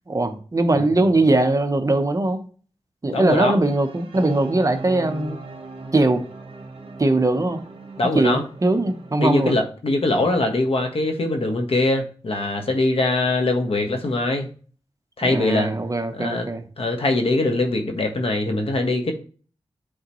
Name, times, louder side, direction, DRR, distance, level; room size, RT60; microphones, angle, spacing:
voice 1, 0.1-2.4 3.0-5.4 5.9-6.2 7.0-7.6 8.1-9.6 15.2-16.7, right 2 dB, 35° right, 7 dB, 0.9 m, -20 dB
voice 2, 3.1-3.6 8.0-8.4 9.2-14.5 15.2-15.7 16.1-16.5 16.8-19.1, left 2 dB, 65° left, 4 dB, 1.4 m, -22 dB
sound 1, 3.6-9.4, right 3 dB, 60° right, 1.3 m, -39 dB
8.6 x 3.9 x 3.1 m, 0.40 s
wide cardioid pair, 70°, 10 cm